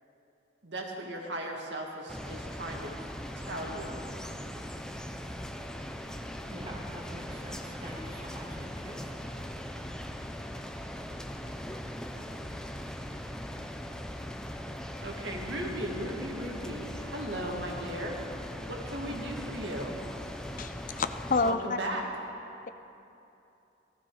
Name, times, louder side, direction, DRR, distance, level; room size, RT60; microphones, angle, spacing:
voice 1, 0.6-2.9 3.4-4.0 9.2-9.3 15.0-18.2 18.7-20.0 21.4-22.0, right 1 dB, 75° right, 0 dB, 2.1 m, -37 dB
sound 1, 2.1-21.5, equal, 5° left, 0.6 m, -40 dB
voice 2, 6.4-9.3, equal, 30° right, -3 dB, 2.2 m, -45 dB
voice 3, 20.6-21.8, left 4 dB, 45° left, 10 dB, 0.5 m, -29 dB
16.5 x 15.0 x 4.9 m, 2.8 s
head